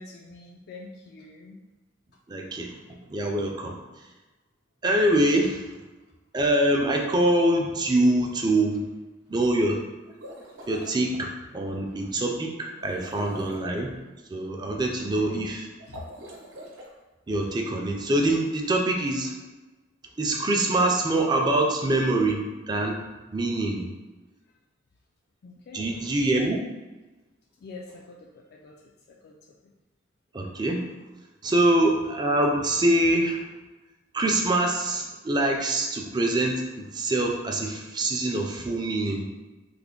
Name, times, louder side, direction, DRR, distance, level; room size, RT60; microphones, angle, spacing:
voice 1, 0.0-1.6 10.6-10.7 12.8-13.0 15.0-15.5 15.9-16.1 25.4-26.0 27.6-29.7 31.5-31.6, left 3 dB, 55° left, -1 dB, 0.3 m, -45 dB
voice 2, 2.3-2.8 3.1-3.8 4.8-5.7 6.3-8.8 9.3-9.8 10.7-13.9 14.3-15.7 17.3-19.3 20.2-23.0 23.3-23.9 25.7-26.6 30.3-30.8 31.4-33.4 34.1-39.3, right 1 dB, 20° right, 1 dB, 0.4 m, -24 dB
sound 1, 10.0-11.0 12.8-13.7 15.8-16.9, right 1 dB, 75° right, 0.8 m, -42 dB
3.3 x 2.1 x 3.7 m, 1.1 s
head